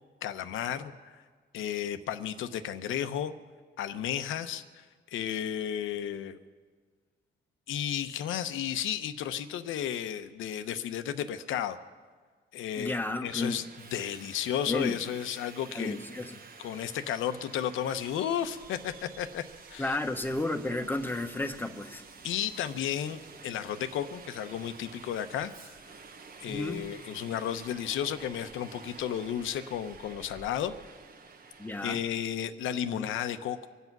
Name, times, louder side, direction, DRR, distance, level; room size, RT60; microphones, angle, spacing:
voice 1, 0.2-1.2 1.5-3.3 3.8-6.4 7.7-11.8 12.5-13.0 13.2-13.6 13.9-16.0 16.6-19.4 19.7-20.0 22.2-25.8 26.4-30.7 31.8-33.7, left 10 dB, 80° left, 10 dB, 0.9 m, -33 dB
voice 2, 12.8-13.6 14.7-15.0 15.7-16.4 19.8-22.0 26.5-26.9 31.6-32.0 32.9-33.1, left 2 dB, 10° left, 6 dB, 1.2 m, -32 dB
Subway metro underground, 13.3-32.0, right 5 dB, 45° right, 1.2 m, -50 dB
24.5 x 8.3 x 6.0 m, 1.5 s
cardioid pair, 90°, 20 cm